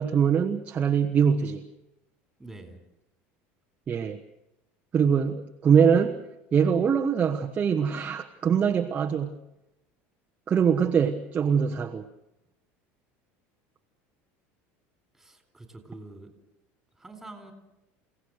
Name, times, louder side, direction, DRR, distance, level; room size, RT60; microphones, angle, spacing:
voice 1, 0.0-1.6 3.9-4.2 4.9-6.2 6.5-9.4 10.5-12.0, right 7 dB, 25° right, 2 dB, 1.2 m, -23 dB
voice 2, 2.4-2.8 15.1-16.3 17.0-17.5, right 2 dB, 5° right, 6 dB, 4.1 m, -45 dB
29.5 x 17.5 x 6.5 m, 0.91 s
cardioid pair, 150°, 6 cm